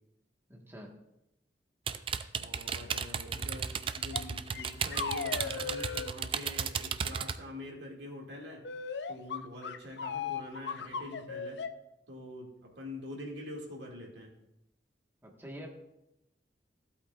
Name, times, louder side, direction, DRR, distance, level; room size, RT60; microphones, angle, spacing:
voice 1, 0.5-0.9 15.2-15.7, equal, 15° right, 0 dB, 1.4 m, -46 dB
sound 1, 1.9-7.4, right 7 dB, 30° right, 0.3 m, -34 dB
voice 2, 2.4-8.6 9.1-11.6 12.1-12.5 12.8-14.3, left 1 dB, 85° right, -1 dB, 2.2 m, -45 dB
sound 2, 4.1-4.2 4.5-6.1 8.6-11.7, left 6 dB, 70° left, 0.5 m, -37 dB
15.0 x 8.3 x 2.4 m, 0.88 s
head